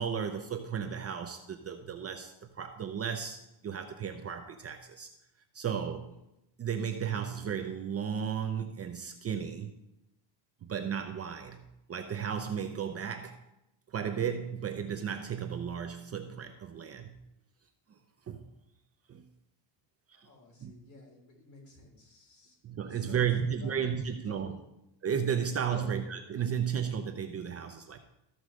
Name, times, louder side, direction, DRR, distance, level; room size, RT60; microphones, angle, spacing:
voice 1, 0.0-5.1 5.5-6.1 6.6-9.7 10.6-13.4 13.9-17.2 17.9-18.0 18.3-18.5 19.1-19.2 20.1-20.3 20.6-20.7 22.6-24.6 25.0-28.0, right 7 dB, 35° right, 6 dB, 0.7 m, -34 dB
voice 2, 20.2-22.6 22.8-23.2 23.6-23.8 24.3-24.6 25.7-25.8, left 4 dB, 40° left, -1 dB, 3.8 m, -52 dB
13.5 x 4.8 x 6.3 m, 0.89 s
cardioid pair, 150°, 43 cm